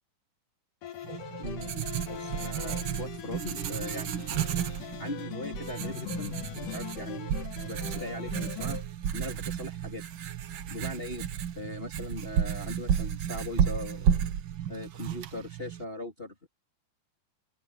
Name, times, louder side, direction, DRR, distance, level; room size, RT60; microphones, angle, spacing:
sound 1, 0.8-8.8, left 11 dB, 85° left, 3.0 m, -41 dB
Writing, 1.0-15.8, right 9 dB, 70° right, 1.2 m, -32 dB
voice 1, 1.4-4.3 5.0-8.8 9.1-10.0 10.7-11.3 11.6-14.2 14.7-16.5, left 1 dB, 15° left, 3.9 m, -40 dB
open air
omnidirectional pair, 3.7 m